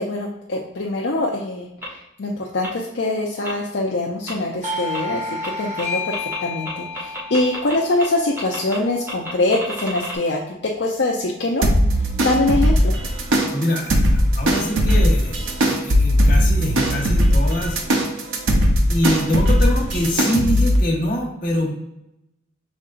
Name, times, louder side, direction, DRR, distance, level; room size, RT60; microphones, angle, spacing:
voice 1, 0.0-6.2 6.4-11.7 12.2-12.9, left 2 dB, 60° left, -1 dB, 0.5 m, -23 dB
sound 1, 1.8-1.9 2.6-2.7 3.4-3.5 4.3-4.4 4.9-5.0 5.4-5.5 5.8-5.9 6.1-6.4 6.7-7.7 8.0-8.1 8.4-8.8 9.1-10.2, equal, 10° right, 1.0 m, -31 dB
Doorbell, 4.6-9.9, left 3 dB, 35° right, 1.1 m, -31 dB
sound 2, 11.6-20.8, equal, 85° right, 0.7 m, -18 dB
voice 2, 13.5-17.8 18.1-18.3 18.9-21.7, left 1 dB, 45° left, -3 dB, 1.3 m, -24 dB
5.3 x 3.7 x 2.5 m, 0.86 s
head